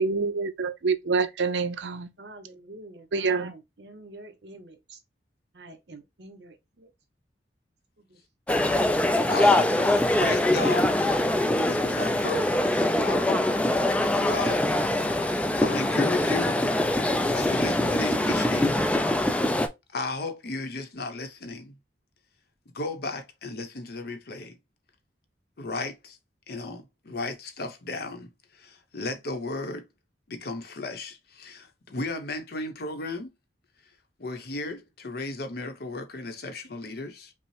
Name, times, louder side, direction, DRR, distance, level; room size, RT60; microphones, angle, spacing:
voice 1, 0.0-2.1 3.1-3.5, right 4 dB, 85° right, 0.5 m, -26 dB
voice 2, 2.2-5.0 5.5-6.9 8.0-8.2, right 2 dB, 70° right, 0.9 m, -47 dB
sound 1, 8.5-19.7, left 1 dB, 5° left, 0.3 m, -23 dB
voice 3, 9.3-11.1 11.5-13.5 14.0-14.8 15.1-16.6 17.3-18.8 19.9-21.8 22.7-24.6 25.6-26.2 26.5-29.8 30.3-33.3 34.2-37.3, left 3 dB, 60° left, 0.7 m, -35 dB
5.3 x 2.0 x 3.1 m
head